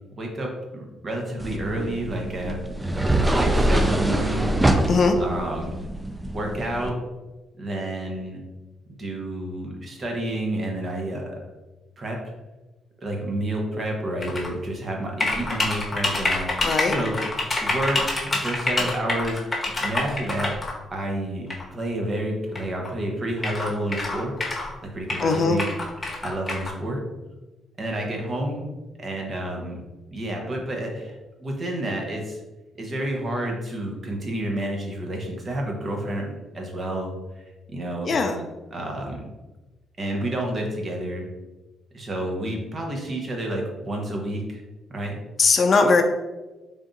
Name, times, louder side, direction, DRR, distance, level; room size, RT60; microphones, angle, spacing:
voice 1, 0.1-2.6 3.2-4.5 5.2-5.7 6.3-7.0 7.6-8.4 9.0-11.4 12.0-12.3 13.0-17.2 17.6-20.5 20.9-24.3 24.9-25.7 26.2-27.0 27.8-29.8 30.1-32.4 32.8-37.4 37.7-38.1 38.7-39.2 40.0-41.3 41.9-44.6 44.9-45.1, right 1 dB, 40° right, 1 dB, 1.0 m, -30 dB
sound 1, 1.4-6.9, right 1 dB, 10° right, 0.4 m, -24 dB
sound 2, 14.2-14.5 15.2-20.7 21.5-21.6 22.5-22.6 22.8-22.9 23.4-24.7 25.1-26.7, left 2 dB, 20° left, 1.1 m, -26 dB
voice 2, 16.6-16.9 25.2-25.6 38.1-38.4 45.4-46.0, left 4 dB, 45° left, 5 dB, 0.5 m, -19 dB
3.6 x 2.6 x 3.8 m, 1.1 s
cardioid pair, 90°, 0 cm